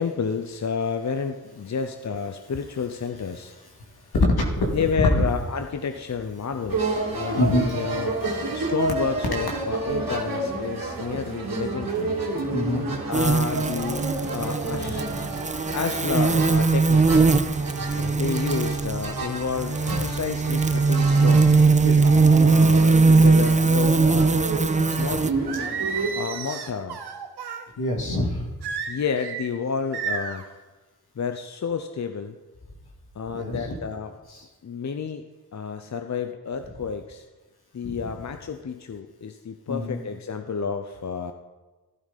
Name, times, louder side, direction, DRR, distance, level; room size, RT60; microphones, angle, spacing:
voice 1, 0.0-3.5 4.7-8.2 8.5-12.1 13.1-14.0 14.3-15.0 15.7-17.2 18.2-22.0 22.4-24.3 25.0-25.2 26.1-27.0 28.9-30.4 31.2-32.4 33.1-34.1 34.6-35.2 35.5-37.2 37.7-41.3, left 6 dB, 45° left, 7 dB, 0.8 m, -30 dB
voice 2, 4.1-4.7 7.3-7.7 12.5-12.9 14.7-15.2 18.0-18.2 19.9-20.1 25.1-25.2 27.8-28.4 33.3-33.7 37.8-38.1 39.7-40.0, left 1 dB, 75° left, 1 dB, 2.4 m, -25 dB
sound 1, 6.7-26.1, right 3 dB, 60° right, 2.7 m, -30 dB
sound 2, 13.1-25.3, right 4 dB, 20° right, 0.6 m, -20 dB
Singing, 25.5-27.6 28.6-29.5 29.9-30.4, right 6 dB, 90° right, 1.1 m, -32 dB
13.0 x 12.0 x 4.2 m, 1.2 s
supercardioid pair, 40°, 38 cm